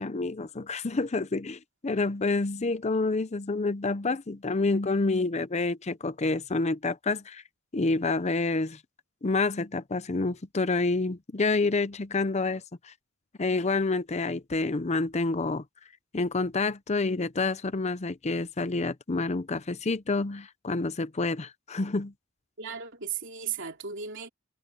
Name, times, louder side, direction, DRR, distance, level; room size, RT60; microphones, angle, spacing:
voice 1, 0.0-7.4 7.7-8.8 9.2-12.9 13.4-15.6 16.1-22.1, left 3 dB, 35° left, 0.6 m, -28 dB
voice 2, 22.6-24.3, right 7 dB, 65° right, 3.0 m, -36 dB
head